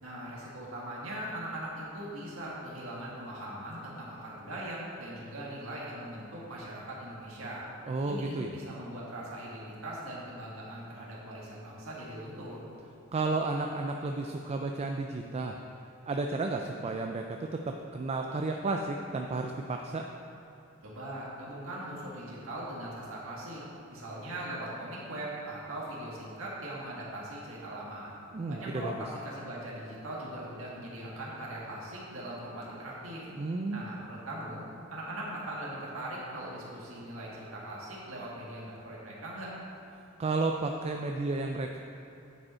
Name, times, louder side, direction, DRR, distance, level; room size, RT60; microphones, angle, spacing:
voice 1, 0.0-7.7 8.0-12.6 20.8-23.6 23.9-28.1 28.5-33.3 33.7-34.6 34.9-39.5, right 1 dB, 85° right, -5 dB, 1.8 m, -40 dB
voice 2, 7.8-8.5 13.1-15.6 16.1-20.0 28.3-28.9 33.3-33.8 40.2-41.8, right 3 dB, 30° right, 3 dB, 0.3 m, -32 dB
9.8 x 5.2 x 4.3 m, 2.9 s
head